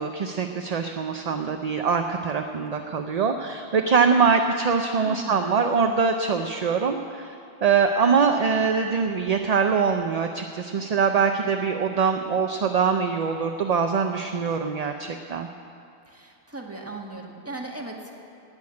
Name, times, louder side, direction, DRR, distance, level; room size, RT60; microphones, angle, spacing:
voice 1, 0.0-7.3 7.6-15.5, right 5 dB, 45° right, 5 dB, 0.6 m, -23 dB
voice 2, 5.0-5.5 16.1-18.2, right 2 dB, 15° right, -1 dB, 1.7 m, -37 dB
17.5 x 6.5 x 9.6 m, 2.7 s
omnidirectional pair, 1.1 m